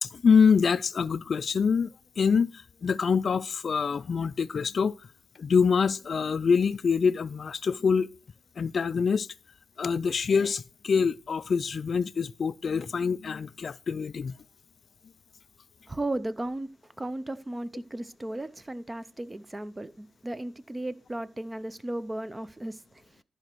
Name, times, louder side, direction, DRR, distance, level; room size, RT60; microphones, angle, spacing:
voice 1, 0.0-1.9 2.2-2.5 2.8-5.0 5.4-8.1 8.6-9.3 9.8-14.3, left 6 dB, 50° left, 0.3 m, -25 dB
voice 2, 15.9-23.2, right 1 dB, 15° right, 0.5 m, -35 dB
13.5 x 5.0 x 4.5 m
cardioid pair, 95°, 0 cm